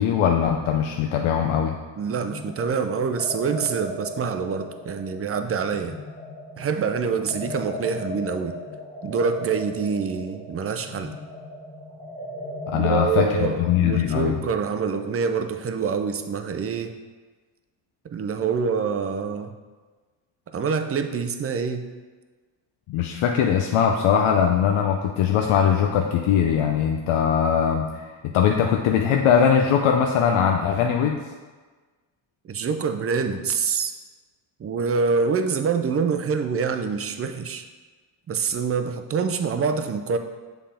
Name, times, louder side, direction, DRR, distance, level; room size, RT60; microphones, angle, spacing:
voice 1, 0.0-1.7 12.7-14.4 22.9-27.9 28.2-31.2, left 8 dB, 80° left, 2 dB, 0.6 m, -21 dB
sound 1, 1.9-15.5, left 1 dB, 15° left, 1.0 m, -38 dB
voice 2, 2.0-6.0 6.6-8.5 9.0-11.1 12.7-16.9 18.0-19.5 20.5-21.8 32.5-33.9 34.6-37.6 38.3-40.2, right 5 dB, 30° right, 7 dB, 0.5 m, -26 dB
7.4 x 3.6 x 4.3 m, 1.4 s
cardioid pair, 90°, 49 cm